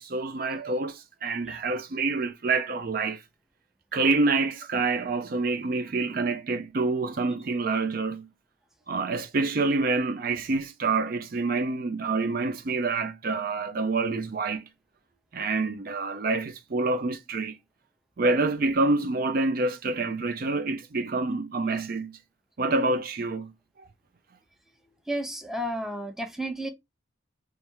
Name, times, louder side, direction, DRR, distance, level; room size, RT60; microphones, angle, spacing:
voice 1, 0.0-3.2 3.9-8.3 8.9-14.7 15.3-17.6 18.2-22.2 22.6-23.5, right 3 dB, 45° right, 0.4 m, -27 dB
voice 2, 25.1-26.7, equal, ahead, 0.6 m, -32 dB
3.3 x 3.2 x 4.5 m
head